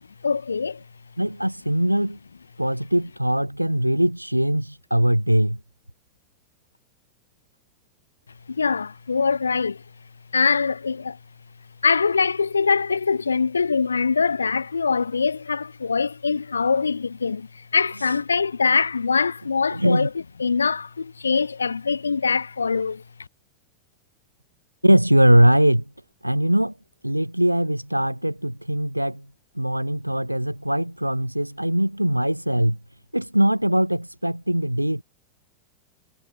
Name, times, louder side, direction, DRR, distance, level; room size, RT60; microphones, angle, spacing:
voice 1, 0.2-0.8 8.5-9.8 10.3-11.2 11.8-20.1 20.4-23.0, left 5 dB, 75° left, 1.0 m, -23 dB
voice 2, 1.2-2.2 2.6-5.6 18.0-18.2 19.7-20.1 24.8-25.8 26.2-26.7 27.0-29.3 29.6-32.8 33.1-35.0, right 1 dB, 90° right, 0.3 m, -21 dB
figure-of-eight pair, 90°, 0 cm